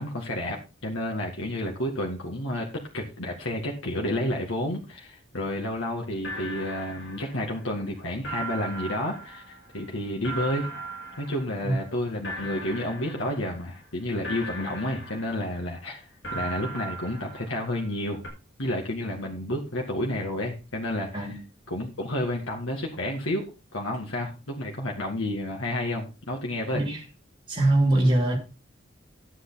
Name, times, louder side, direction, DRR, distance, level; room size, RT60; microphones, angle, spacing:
voice 1, 0.0-10.7 11.2-16.1 16.3-18.2 18.6-21.1 21.7-26.8, left 1 dB, 85° left, 2.0 m, -30 dB
sound 1, 6.2-7.9 8.2-12.0 12.2-13.9 14.2-15.9 16.2-18.0 18.2-18.3, right 2 dB, 60° left, 6.0 m, -39 dB
voice 2, 26.7-27.0 27.5-28.4, right 1 dB, 25° right, 2.7 m, -22 dB
11.5 x 8.1 x 4.1 m
head